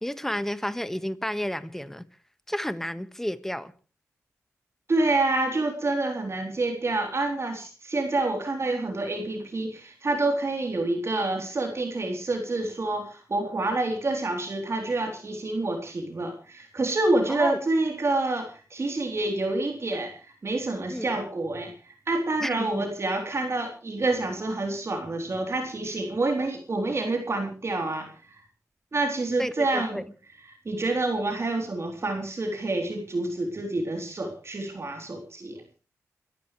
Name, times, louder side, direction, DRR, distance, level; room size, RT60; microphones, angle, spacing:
voice 1, 0.0-2.0 2.5-3.7 17.3-17.6 20.9-21.1 22.4-22.9 29.4-30.0, equal, 5° left, 1.6 m, -31 dB
voice 2, 4.9-28.4 28.9-30.0 30.7-35.6, right 2 dB, 50° right, 3.6 m, -28 dB
28.5 x 14.0 x 3.3 m
cardioid pair, 50°, 6 cm